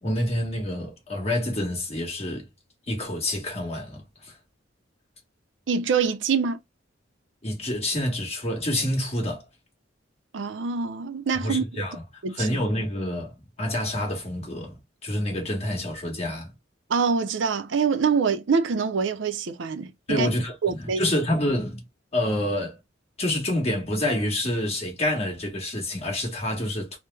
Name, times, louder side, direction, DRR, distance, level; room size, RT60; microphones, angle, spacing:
voice 1, 0.0-2.5 2.9-4.3 7.4-9.4 11.3-12.0 12.3-16.5 20.1-21.8 22.1-22.8 23.2-27.0, left 1 dB, 35° left, 1.3 m, -28 dB
voice 2, 5.7-6.6 10.3-11.8 12.2-12.5 16.9-20.3 20.6-21.0, right 5 dB, 65° right, 0.5 m, -25 dB
3.1 x 2.1 x 3.2 m
head